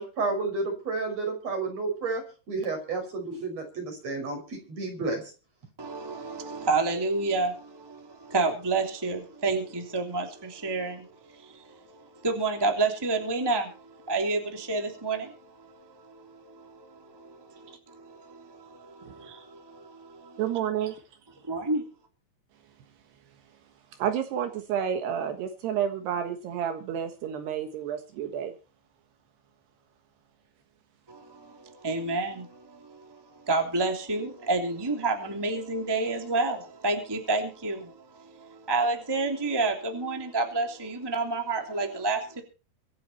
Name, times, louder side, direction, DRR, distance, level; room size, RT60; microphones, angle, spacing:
voice 1, 0.0-5.2, right 3 dB, 40° right, 6.6 m, -31 dB
voice 2, 5.8-20.4 21.5-21.8 31.1-42.4, right 3 dB, 5° right, 2.3 m, -30 dB
voice 3, 20.4-21.0 24.0-28.5, right 9 dB, 75° right, 3.5 m, -30 dB
25.0 x 8.7 x 4.4 m
omnidirectional pair, 4.9 m